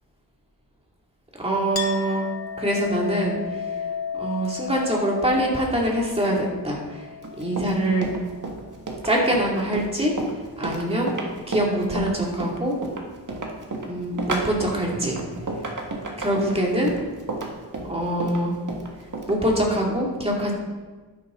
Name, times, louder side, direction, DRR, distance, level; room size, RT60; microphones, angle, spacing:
voice 1, 1.4-2.3 2.6-3.9 4.1-8.1 9.0-10.1 10.6-11.1 11.5-12.7 13.8-15.2 16.2-17.0 17.8-18.5 19.3-20.5, right 1 dB, 15° right, -2 dB, 2.5 m, -24 dB
Chink clink, 1.8-8.8, left 7 dB, 65° left, 0.9 m, -35 dB
Run, 7.2-19.4, right 2 dB, 50° right, 1.7 m, -32 dB
12.0 x 10.5 x 3.9 m, 1.3 s
wide cardioid pair, 130°, 39 cm